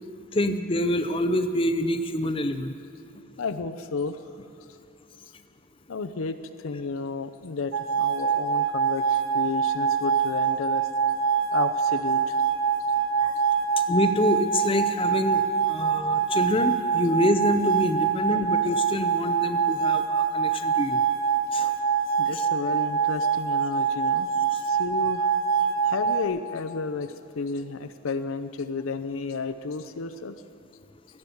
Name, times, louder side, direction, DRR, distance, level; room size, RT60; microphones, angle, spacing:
voice 1, 0.3-2.7 13.2-13.3 13.9-21.0 21.5-21.7 22.3-22.5, left 1 dB, 25° left, 8 dB, 0.6 m, -26 dB
voice 2, 3.4-4.2 5.9-10.9 11.5-12.4 22.2-24.3 24.7-25.3 25.8-30.4, left 4 dB, 85° left, 9 dB, 0.6 m, -32 dB
sound 1, 7.7-26.2, right 6 dB, 90° right, 0.7 m, -25 dB
17.0 x 11.0 x 7.1 m, 2.6 s
head